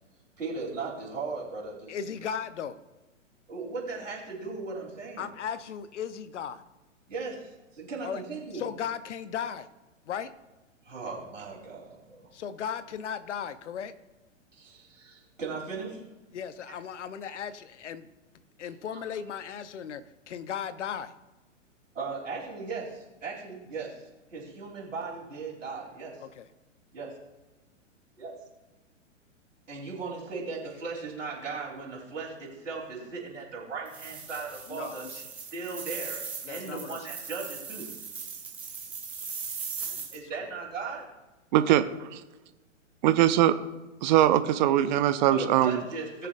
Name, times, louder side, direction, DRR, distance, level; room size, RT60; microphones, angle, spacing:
voice 1, 0.4-2.2 3.5-5.3 7.1-8.7 10.8-12.2 14.5-16.0 21.9-26.2 26.9-27.1 28.2-28.3 29.7-35.3 35.5-36.2 36.5-37.9 40.1-41.0 45.3-46.3, right 4 dB, 75° right, -5 dB, 3.5 m, -37 dB
voice 2, 1.9-2.8 5.2-6.6 8.0-8.2 8.5-9.7 10.1-10.3 12.3-13.9 16.3-18.1 18.6-21.1 26.2-26.5 34.7-35.2 36.4-37.0 39.8-40.1 40.4-40.5, left 8 dB, 65° left, 13 dB, 0.8 m, -36 dB
sound 1, 33.9-40.2, right 6 dB, 5° right, 0.3 m, -39 dB
voice 3, 41.5-41.8 42.1-42.2 43.0-43.5 44.0-45.8, right 12 dB, 35° right, 12 dB, 0.7 m, -21 dB
19.0 x 6.8 x 2.6 m, 1.1 s
figure-of-eight pair, 115°, 38 cm